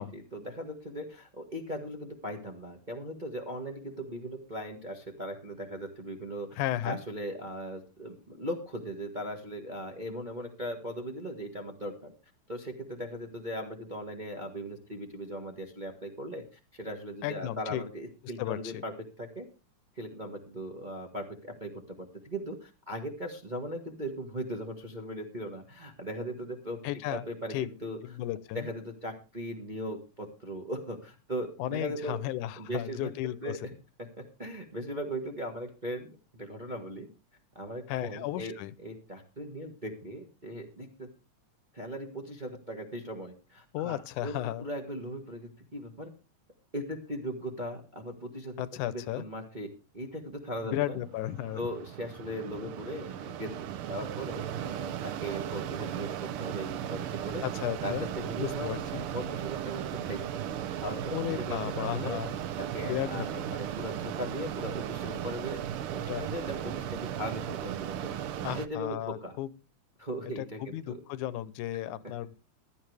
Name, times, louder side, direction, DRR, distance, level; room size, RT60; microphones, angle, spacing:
voice 1, 0.0-6.5 6.8-12.1 12.5-16.4 16.7-18.9 19.2-19.4 20.0-26.8 27.1-28.0 28.5-32.2 32.6-33.1 33.4-33.6 34.2-37.1 37.5-38.5 38.8-41.1 41.7-46.1 46.7-51.0 51.5-53.5 53.9-57.4 57.8-58.8 59.1-60.4 60.8-62.2 62.6-68.2 68.6-69.3 70.0-71.0, equal, 25° right, 2 dB, 1.1 m, -38 dB
voice 2, 6.6-7.0 17.2-17.8 18.4-18.8 26.8-27.2 27.5-27.7 28.0-28.7 31.6-33.6 37.9-38.7 43.7-44.7 48.6-49.2 50.6-51.7 57.4-58.1 58.4-59.0 61.1-62.3 62.8-63.4 66.1-66.2 68.4-69.5 70.4-72.4, left 13 dB, 80° left, 17 dB, 2.2 m, -34 dB
Mechanisms, 50.7-68.7, right 10 dB, 80° right, 1.2 m, -36 dB
16.0 x 12.0 x 3.4 m, 0.31 s
omnidirectional pair, 3.5 m